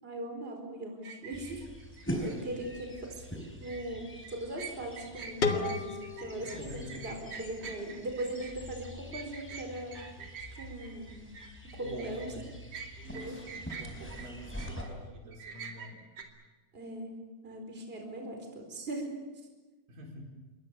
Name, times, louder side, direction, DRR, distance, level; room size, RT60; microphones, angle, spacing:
voice 1, 0.0-1.7 2.2-3.3 3.6-10.0 10.6-11.2 11.6-12.3 13.1-13.3 16.7-17.1 17.4-19.1, right 1 dB, 15° right, 3 dB, 4.4 m, -39 dB
sound 1, 1.0-2.4 3.4-3.8 4.2-12.3 12.7-14.9 15.3-16.2, right 6 dB, 50° right, 3.6 m, -46 dB
sound 2, 1.3-14.8, equal, 5° left, 4.1 m, -44 dB
voice 2, 2.1-2.6 6.4-7.2 11.8-12.5 13.0-16.1 19.9-20.4, equal, 65° right, 0 dB, 6.3 m, -47 dB
sound 3, 5.4-8.3, left 4 dB, 40° left, 2.0 m, -35 dB
28.0 x 23.0 x 6.8 m, 1.2 s
omnidirectional pair, 4.1 m